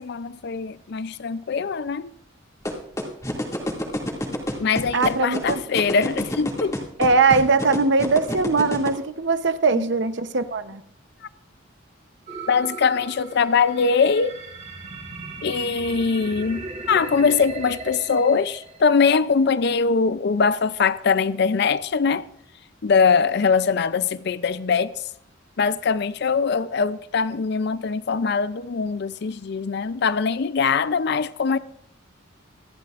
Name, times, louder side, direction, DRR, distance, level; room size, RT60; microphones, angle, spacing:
voice 1, 0.0-2.1 4.6-6.8 9.7-9.8 12.5-14.4 15.4-22.3 22.8-25.0 25.6-31.6, left 5 dB, 55° left, 0.5 m, -22 dB
sound 1, 2.6-8.9, left 1 dB, 15° left, 2.2 m, -26 dB
voice 2, 4.9-5.6 7.0-10.8, right 4 dB, 60° right, 0.8 m, -20 dB
sound 2, 12.3-19.3, right 3 dB, 35° right, 2.6 m, -37 dB
26.5 x 12.0 x 2.5 m
head